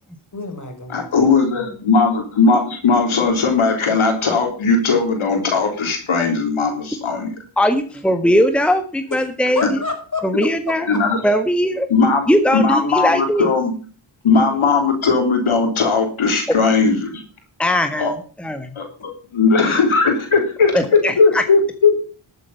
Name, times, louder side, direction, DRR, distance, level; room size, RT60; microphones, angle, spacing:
voice 1, 0.3-1.7 9.5-10.3 10.7-11.0, left 3 dB, 35° left, 5 dB, 4.7 m, -29 dB
voice 2, 0.9-7.3 10.9-11.2 11.9-13.7 14.2-17.2 18.0-18.1 18.8-18.9 19.3-21.9, left 4 dB, 75° left, 3 dB, 3.6 m, -18 dB
voice 3, 7.6-9.8 10.2-10.9 11.2-11.9 12.3-13.5 17.6-18.7 20.7-21.4, equal, ahead, 7 dB, 1.4 m, -19 dB
12.5 x 8.1 x 5.7 m, 0.39 s
cardioid pair, 55°, 49 cm